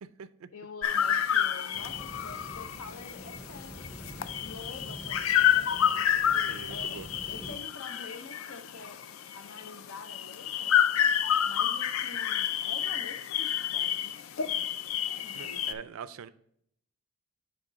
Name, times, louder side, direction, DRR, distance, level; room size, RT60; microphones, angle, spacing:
voice 1, 0.0-0.5 6.5-7.1 15.3-16.3, right 6 dB, 70° right, 0.4 m, -43 dB
voice 2, 0.5-4.0 4.4-9.1 9.3-10.8 11.5-14.8 15.1-15.8, left 3 dB, 90° left, 0.8 m, -47 dB
sound 1, 0.8-15.7, left 9 dB, 70° left, 0.4 m, -29 dB
sound 2, 1.7-7.6, left 1 dB, 10° left, 0.5 m, -46 dB
9.7 x 3.6 x 3.9 m
head